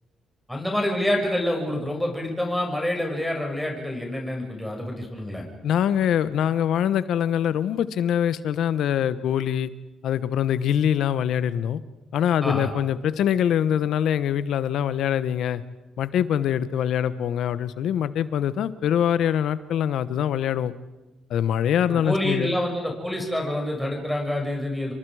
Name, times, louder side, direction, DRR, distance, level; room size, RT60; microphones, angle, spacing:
voice 1, 0.5-5.4 12.4-12.7 21.9-24.9, left 1 dB, 5° left, 0 dB, 6.2 m, -27 dB
voice 2, 5.6-9.7 10.0-11.8 12.1-15.6 16.0-20.7 21.3-22.5, left 9 dB, 75° left, 14 dB, 1.1 m, -24 dB
28.5 x 24.5 x 4.9 m, 1.1 s
cardioid pair, 90°, 0 cm